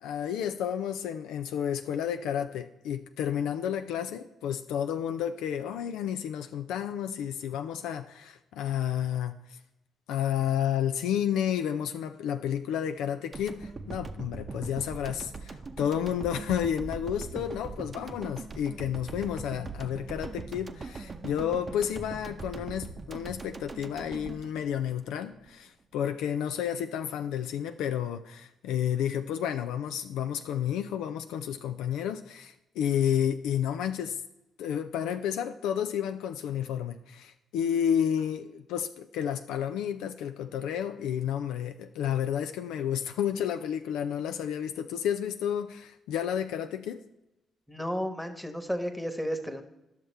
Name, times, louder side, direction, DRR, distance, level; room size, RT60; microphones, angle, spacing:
voice 1, 0.0-9.3 10.1-34.2 34.6-47.0, left 9 dB, 70° left, 8 dB, 0.3 m, -31 dB
sound 1, 13.3-25.5, right 3 dB, 40° right, 0.7 m, -41 dB
voice 2, 47.7-49.6, equal, ahead, 6 dB, 1.2 m, -32 dB
10.5 x 6.5 x 3.3 m, 0.91 s
hypercardioid pair, 45°, 0 cm